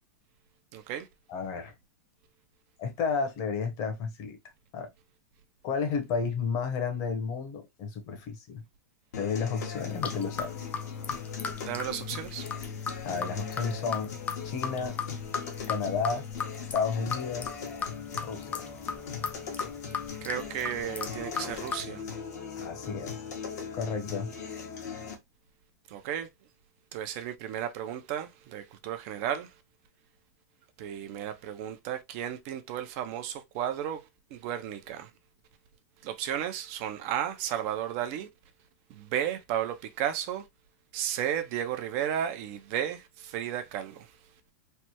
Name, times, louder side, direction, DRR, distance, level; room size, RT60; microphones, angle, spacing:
voice 1, 0.7-1.1 11.6-12.5 20.2-22.0 25.9-26.3 26.9-29.5 30.8-35.1 36.0-38.3 38.9-40.5 40.9-44.1, right 10 dB, 50° right, 0.6 m, -33 dB
voice 2, 1.3-1.7 2.8-4.4 4.7-4.9 5.6-8.6 9.1-10.7 13.0-14.1 14.4-14.9 15.7-16.2 16.7-17.6 18.2-18.7 22.6-23.1 23.7-24.3, left 5 dB, 40° left, 1.0 m, -32 dB
sound 1, 9.1-25.1, left 6 dB, 75° left, 1.2 m, -39 dB
sound 2, 9.8-21.8, left 6 dB, 15° left, 0.4 m, -37 dB
3.3 x 2.1 x 2.9 m
hypercardioid pair, 130°, 9 cm